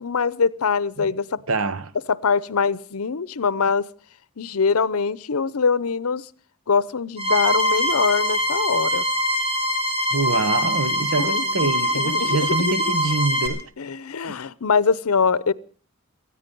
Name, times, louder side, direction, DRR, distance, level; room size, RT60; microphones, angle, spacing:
voice 1, 0.0-1.4 2.1-3.9 4.4-6.3 6.7-9.0 11.2-12.8 13.8-15.5, left 5 dB, 85° left, 0.7 m, -23 dB
voice 2, 1.5-1.9 10.1-13.7 14.3-14.4, right 3 dB, 70° right, 0.9 m, -25 dB
sound 1, 7.2-13.5, equal, 30° right, 3.7 m, -23 dB
19.0 x 14.0 x 5.3 m
head